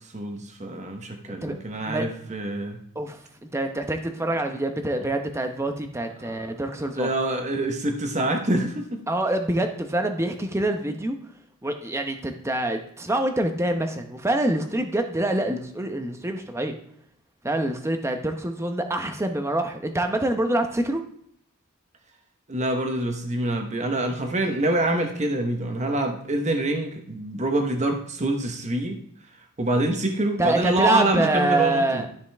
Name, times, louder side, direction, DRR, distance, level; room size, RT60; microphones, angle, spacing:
voice 1, 0.1-2.8 6.3-6.4 6.9-9.0 22.5-29.0 29.6-32.1, right 1 dB, 35° right, 4 dB, 1.1 m, -26 dB
voice 2, 2.9-7.1 9.1-11.2 11.6-16.8 17.4-21.0 30.4-32.1, right 1 dB, 15° right, 6 dB, 0.8 m, -25 dB
12.5 x 5.3 x 3.5 m, 0.67 s
head